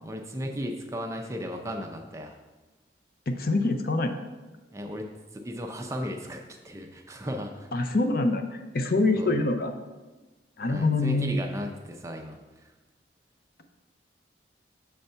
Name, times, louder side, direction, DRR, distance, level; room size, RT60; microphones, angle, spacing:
voice 1, 0.0-2.4 4.7-5.1 5.3-7.7 9.2-9.3 10.7-12.4, equal, 15° right, 3 dB, 0.5 m, -35 dB
voice 2, 3.3-4.1 7.7-9.7 10.6-11.4, left 2 dB, 50° left, 7 dB, 0.5 m, -25 dB
6.6 x 3.5 x 5.4 m, 1.2 s
head